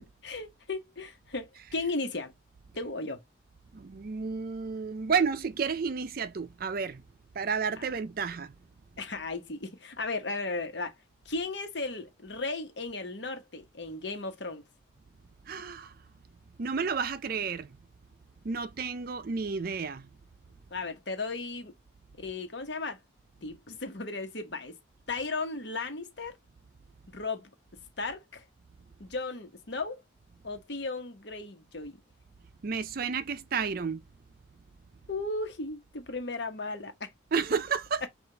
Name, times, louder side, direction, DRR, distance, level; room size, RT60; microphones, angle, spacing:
voice 1, 0.2-2.3 2.7-3.2 7.8-7.9 9.0-10.9 11.2-14.6 20.7-21.7 22.2-23.0 23.4-24.8 25.1-26.4 27.1-27.5 28.0-28.4 29.0-30.0 30.4-32.0 35.1-37.4, left 3 dB, 60° left, 1.1 m, -35 dB
voice 2, 3.7-7.0 7.3-8.5 15.5-15.9 16.6-17.8 18.4-20.1 32.6-34.0 37.3-38.1, right 5 dB, 50° right, 0.4 m, -31 dB
5.7 x 2.5 x 3.3 m
head